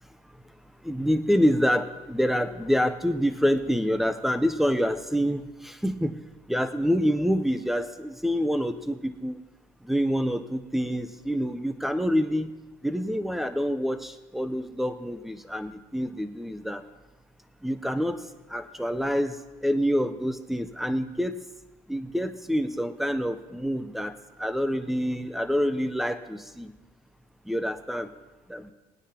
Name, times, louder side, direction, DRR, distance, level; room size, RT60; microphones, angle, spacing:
voice 1, 0.9-6.1 6.5-9.4 9.9-12.5 12.8-16.8 17.6-18.2 18.5-19.3 19.6-21.3 21.9-24.1 24.4-26.7 27.5-28.1 28.5-28.7, equal, ahead, 10 dB, 0.7 m, -26 dB
18.5 x 9.7 x 2.9 m, 1.1 s
cardioid pair, 95°, 15 cm